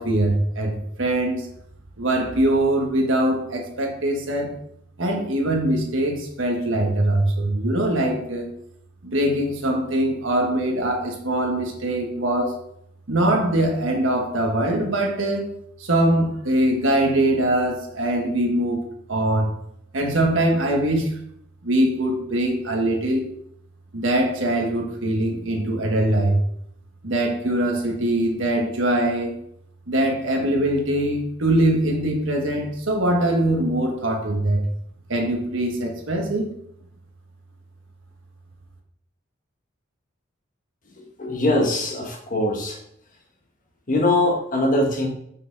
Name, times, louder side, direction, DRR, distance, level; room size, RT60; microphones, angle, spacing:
voice 1, 0.0-1.5 2.0-4.5 5.0-8.5 9.0-12.6 13.1-15.5 15.8-18.8 19.1-19.5 19.9-21.1 21.6-23.2 23.9-26.4 27.0-29.3 29.9-34.6 35.1-36.4, right 1 dB, 70° right, 2 dB, 1.5 m, -22 dB
voice 2, 41.2-42.8 43.9-45.1, left 1 dB, 40° left, 2 dB, 1.4 m, -21 dB
6.1 x 5.8 x 4.0 m, 0.73 s
head